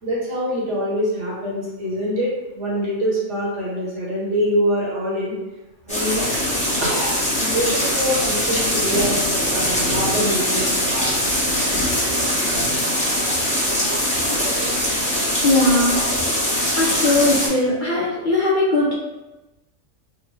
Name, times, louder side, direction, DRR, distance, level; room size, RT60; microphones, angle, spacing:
voice 1, 0.0-5.3 5.8-6.3 6.8-9.2 9.5-11.1, equal, 65° right, -5 dB, 1.4 m, -24 dB
sound 1, 5.9-17.5, equal, 5° left, 0.9 m, -22 dB
voice 2, 13.8-14.7 15.2-18.9, left 2 dB, 60° left, -5 dB, 0.5 m, -21 dB
3.6 x 2.2 x 3.1 m, 1.0 s
omnidirectional pair, 1.4 m